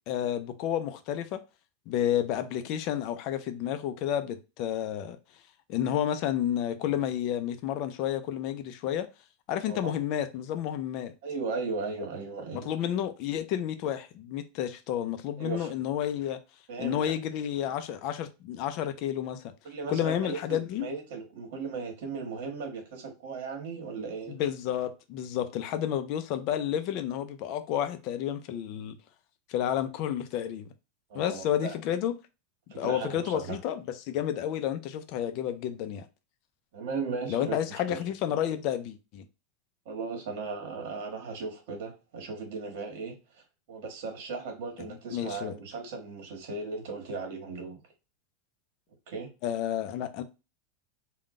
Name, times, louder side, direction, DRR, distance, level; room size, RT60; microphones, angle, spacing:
voice 1, 0.1-1.4 1.9-5.2 5.7-9.1 9.5-11.1 12.5-16.4 16.8-19.4 19.9-20.9 24.3-29.0 29.5-30.7 31.1-32.1 32.8-36.1 37.3-39.2 44.8-45.5 49.4-50.2, left 10 dB, 40° left, 0.5 m, -31 dB
voice 2, 11.2-12.7 15.4-15.7 16.7-17.1 19.6-24.4 31.1-31.7 32.7-33.6 36.7-37.6 37.9-38.0 39.8-43.2 43.7-47.8 49.1-49.3, right 4 dB, 60° right, 1.4 m, -36 dB
3.7 x 2.3 x 3.6 m
supercardioid pair, 170°, 0 cm